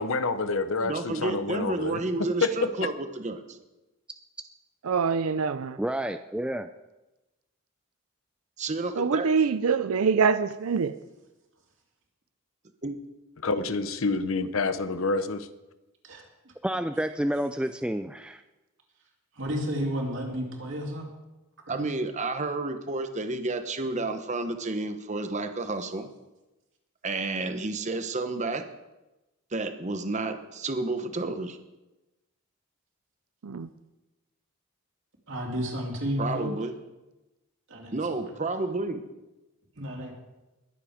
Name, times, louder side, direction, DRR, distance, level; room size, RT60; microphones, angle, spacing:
voice 1, 0.0-2.7 13.4-15.5, left 3 dB, 70° left, 12 dB, 0.8 m, -28 dB
voice 2, 0.8-3.6 8.6-9.3 12.8-13.0 21.7-26.1 27.0-28.6 29.5-31.6 36.2-36.7 37.9-39.0, right 3 dB, 35° right, 8 dB, 1.0 m, -31 dB
voice 3, 4.8-5.8 9.0-11.0 33.4-33.7, right 5 dB, 85° right, 13 dB, 0.5 m, -24 dB
voice 4, 5.8-6.7 16.6-18.4, right 1 dB, 5° right, 8 dB, 0.3 m, -29 dB
voice 5, 19.4-21.1 21.7-21.9 35.3-36.5 37.7-37.9 39.8-40.1, equal, 60° right, 0 dB, 2.9 m, -31 dB
21.0 x 7.7 x 5.0 m, 1.0 s
head